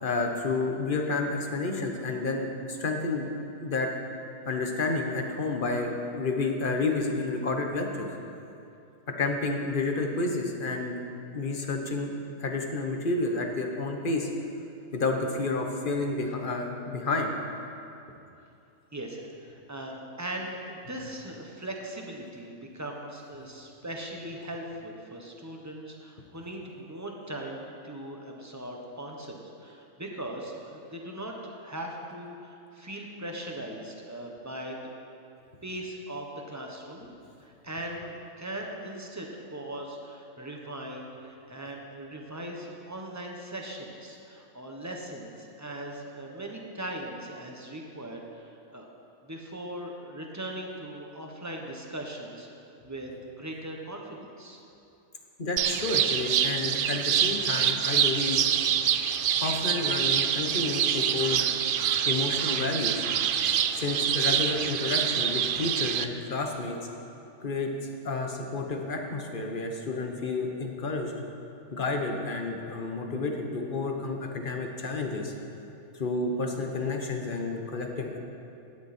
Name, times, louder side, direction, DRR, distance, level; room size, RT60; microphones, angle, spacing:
voice 1, 0.0-3.3 3.6-3.9 4.5-8.1 9.2-10.9 11.3-12.1 12.4-14.3 14.9-17.3 55.4-58.4 59.4-61.4 62.0-63.0 63.8-66.8 67.4-67.7 68.0-71.1 71.7-75.3 75.9-78.2, left 3 dB, 40° left, 3 dB, 1.3 m, -30 dB
voice 2, 18.9-34.8 35.6-37.1 37.4-48.4 48.7-48.9 49.2-52.5 52.8-53.1 53.4-54.6, right 1 dB, 15° right, 0 dB, 1.2 m, -39 dB
sound 1, 55.6-66.1, right 9 dB, 65° right, 0.5 m, -26 dB
16.5 x 9.8 x 4.4 m, 2.7 s
omnidirectional pair, 1.4 m